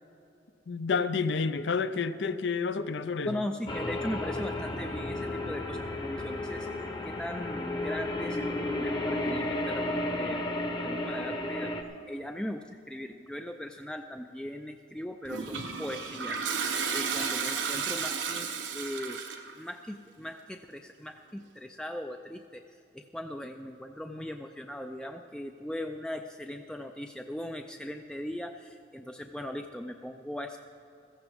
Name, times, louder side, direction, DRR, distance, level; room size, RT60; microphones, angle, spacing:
voice 1, 0.7-3.4, left 5 dB, 70° left, 0.5 m, -29 dB
voice 2, 3.3-6.7 7.0-10.5 10.8-11.7 12.1-16.5 16.9-19.2 19.6-30.6, left 1 dB, 5° left, 0.3 m, -39 dB
sound 1, 3.7-11.8, left 1 dB, 25° left, 0.9 m, -33 dB
Toilet flush, 15.3-19.5, right 6 dB, 85° right, 1.1 m, -33 dB
15.5 x 14.5 x 3.5 m
head